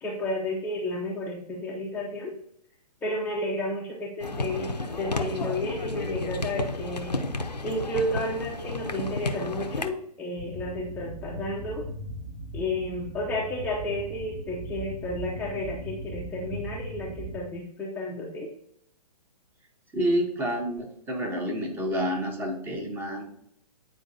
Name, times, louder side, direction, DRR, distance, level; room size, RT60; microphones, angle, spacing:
voice 1, 0.0-2.4 3.0-7.2 7.6-11.9 12.5-18.5, left 1 dB, 10° left, -3 dB, 0.6 m, -32 dB
sound 1, 4.2-9.9, left 2 dB, 90° left, 0.7 m, -32 dB
coming of terror, 10.4-17.4, right 1 dB, 35° right, 1.7 m, -39 dB
voice 2, 19.9-23.2, equal, 10° right, 2 dB, 1.0 m, -28 dB
9.1 x 4.7 x 2.7 m, 0.70 s
figure-of-eight pair, 125°, 20 cm